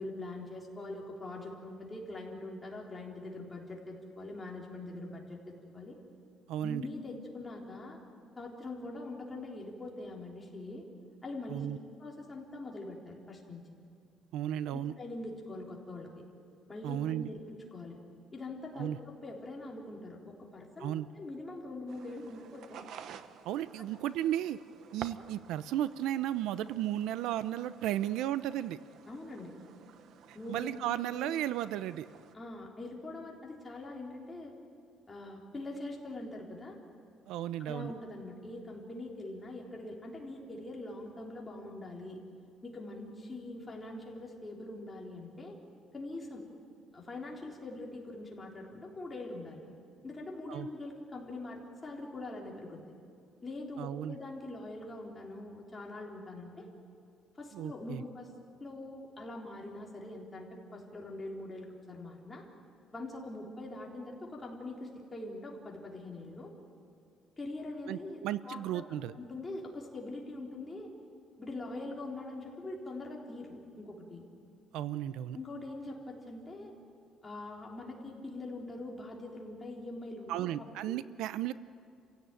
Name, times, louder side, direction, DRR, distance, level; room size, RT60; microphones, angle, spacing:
voice 1, 0.0-6.0 6.6-8.0 8.4-10.8 11.2-11.7 12.0-13.6 14.7-16.1 16.7-17.4 17.7-18.0 18.3-18.9 19.2-22.8 29.1-29.5 30.3-31.4 32.3-34.5 35.1-36.8 37.6-42.2 42.6-45.6 45.9-46.4 46.9-49.6 50.0-52.8 53.4-56.7 57.4-58.3 58.6-62.4 62.9-66.5 67.4-68.8 69.1-70.9 71.4-74.2 75.3-76.7 77.2-81.0, left 2 dB, 15° left, -2 dB, 3.7 m, -43 dB
voice 2, 6.5-6.8 11.5-11.8 14.3-14.9 16.8-17.3 18.8-19.0 20.8-21.1 23.4-24.6 24.9-28.8 30.5-32.1 37.3-37.9 50.5-50.7 53.8-54.1 57.5-58.0 67.9-69.1 74.7-75.4 80.3-81.5, right 12 dB, 85° right, 15 dB, 0.7 m, -34 dB
sound 1, 21.9-32.3, right 8 dB, 60° right, 1.0 m, -52 dB
29.5 x 16.5 x 9.1 m, 2.3 s
cardioid pair, 170°, 0 cm